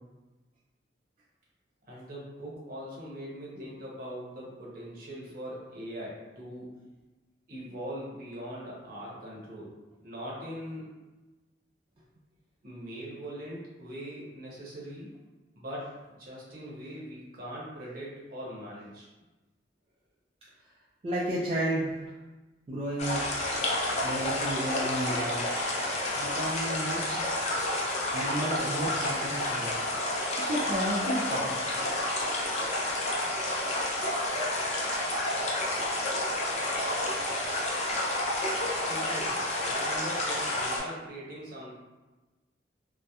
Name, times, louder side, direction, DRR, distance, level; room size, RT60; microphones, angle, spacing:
voice 1, 1.9-6.7 7.5-9.7 10.0-10.9 12.6-15.1 15.5-19.1 38.9-41.7, equal, 55° right, -5 dB, 0.7 m, -41 dB
voice 2, 21.0-22.0 22.7-23.3 24.0-25.5 26.2-27.2 28.1-29.7 30.4-31.5, right 1 dB, 30° right, -7 dB, 0.3 m, -32 dB
sound 1, 23.0-40.8, left 1 dB, 40° left, 0.4 m, -30 dB
2.7 x 2.0 x 2.3 m, 1.2 s
head